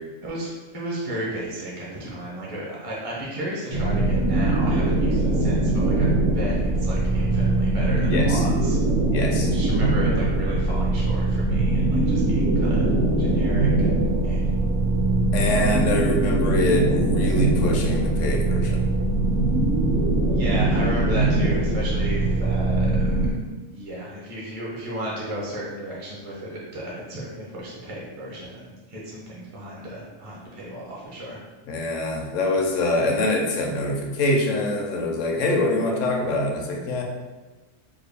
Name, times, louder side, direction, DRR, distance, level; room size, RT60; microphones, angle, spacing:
voice 1, 0.2-8.9 9.4-12.9 13.2-14.0 14.2-14.5 20.3-23.3 23.7-31.4, right 1 dB, 35° right, -5 dB, 0.6 m, -34 dB
sound 1, 3.7-23.3, right 2 dB, 60° right, 0.9 m, -21 dB
voice 2, 8.1-8.4 9.1-9.5 15.3-18.9 31.7-37.0, left 2 dB, 75° left, 1 dB, 1.0 m, -24 dB
3.6 x 2.1 x 3.4 m, 1.2 s
omnidirectional pair, 1.4 m